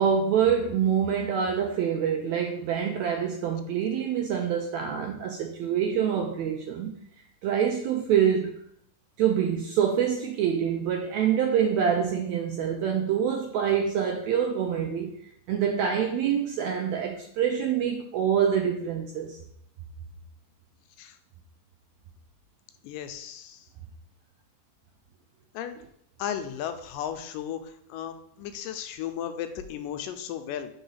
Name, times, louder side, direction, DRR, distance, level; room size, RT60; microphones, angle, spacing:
voice 1, 0.0-6.9 7.4-8.5 9.2-15.1 15.5-19.4, right 8 dB, 85° right, 3 dB, 1.6 m, -26 dB
voice 2, 22.8-23.7 25.5-25.8 26.2-30.7, left 9 dB, 90° left, 9 dB, 2.3 m, -35 dB
4.9 x 3.9 x 5.5 m, 0.70 s
omnidirectional pair, 3.7 m